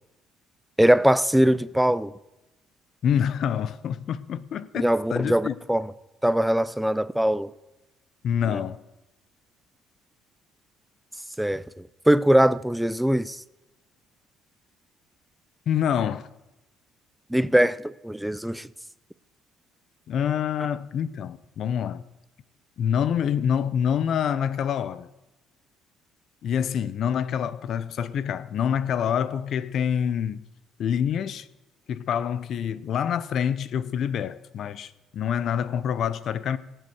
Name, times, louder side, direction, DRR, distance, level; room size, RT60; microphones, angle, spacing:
voice 1, 0.8-2.1 4.7-5.9 6.2-7.5 8.5-8.6 11.4-11.6 12.1-13.4 17.3-18.7, right 1 dB, 5° right, 0.6 m, -21 dB
voice 2, 3.0-5.6 8.2-8.8 15.7-16.3 20.1-22.0 22.8-25.1 26.4-30.4 30.8-31.5 31.9-36.6, left 8 dB, 60° left, 0.8 m, -26 dB
16.0 x 7.9 x 8.1 m
cardioid pair, 95°, 0 cm